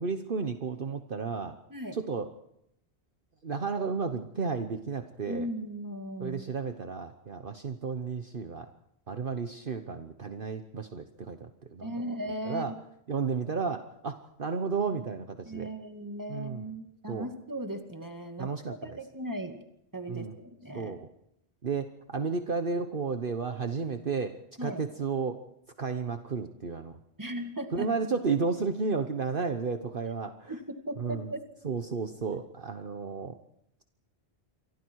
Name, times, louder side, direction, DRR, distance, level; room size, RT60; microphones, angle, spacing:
voice 1, 0.0-1.5 1.9-2.3 3.4-5.5 6.2-8.7 9.1-11.9 12.4-12.7 13.1-15.7 16.3-16.7 17.1-17.3 18.4-19.0 20.1-20.4 20.7-21.1 21.6-25.4 25.8-27.0 27.7-30.5 31.0-31.3 31.6-33.3, right 5 dB, 50° right, 7 dB, 1.3 m, -32 dB
voice 2, 5.3-6.5 11.8-12.7 15.5-19.6 19.9-21.0 24.6-24.8 27.2-27.9 30.5-31.4, right 1 dB, 15° right, 5 dB, 2.4 m, -37 dB
28.5 x 24.0 x 4.8 m, 0.77 s
omnidirectional pair, 1.1 m